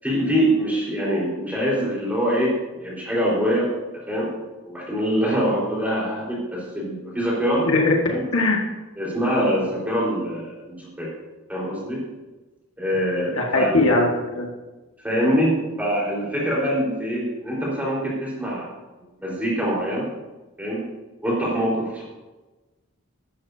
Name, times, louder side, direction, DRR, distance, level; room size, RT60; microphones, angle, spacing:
voice 1, 0.0-3.7 4.1-4.3 4.7-7.7 8.1-8.2 9.0-11.1 11.5-12.0 12.8-13.7 15.0-18.7 19.2-20.1 20.6-20.9 21.2-22.0, equal, 5° right, -6 dB, 4.4 m, -24 dB
voice 2, 7.6-7.9 8.3-8.6 13.4-14.5, left 2 dB, 75° left, 0 dB, 1.8 m, -20 dB
15.0 x 12.0 x 2.8 m, 1.2 s
head